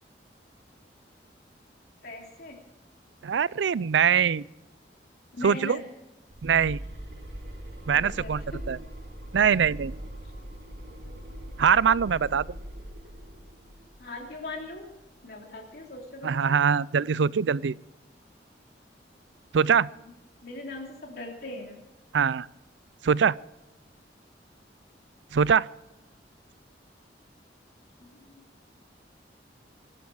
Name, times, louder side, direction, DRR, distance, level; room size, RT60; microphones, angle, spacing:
voice 1, 2.0-2.6 5.3-5.8 7.9-8.6 10.8-11.1 14.0-14.9 15.2-16.6 20.4-21.8 28.0-28.4, left 2 dB, 55° left, 0 dB, 3.4 m, -40 dB
voice 2, 3.2-4.5 5.4-5.8 6.4-6.8 7.9-8.8 9.3-9.9 11.6-12.5 16.2-17.8 19.5-19.9 22.1-22.5 23.0-23.4 25.3-25.7, right 7 dB, 80° right, 21 dB, 0.4 m, -23 dB
sound 1, 6.3-15.2, equal, 60° right, 2.5 m, -41 dB
21.5 x 12.5 x 4.7 m, 1.0 s
head